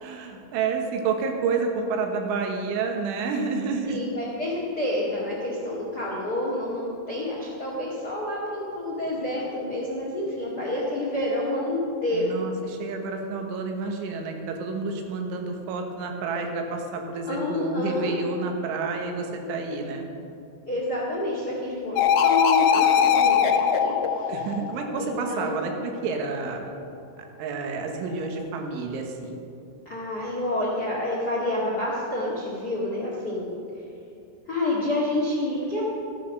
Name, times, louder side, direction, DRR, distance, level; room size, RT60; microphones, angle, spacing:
voice 1, 0.0-4.0 12.1-20.1 24.3-26.8 27.4-29.4, right 4 dB, 80° right, 3 dB, 3.6 m, -29 dB
voice 2, 3.8-12.3 17.3-18.1 20.7-24.5 25.0-25.6 29.8-33.5 34.5-35.8, left 1 dB, 60° left, -4 dB, 1.0 m, -28 dB
sound 1, 22.0-25.3, left 8 dB, 80° left, 2.5 m, -21 dB
14.5 x 10.5 x 6.4 m, 2.7 s
omnidirectional pair, 5.6 m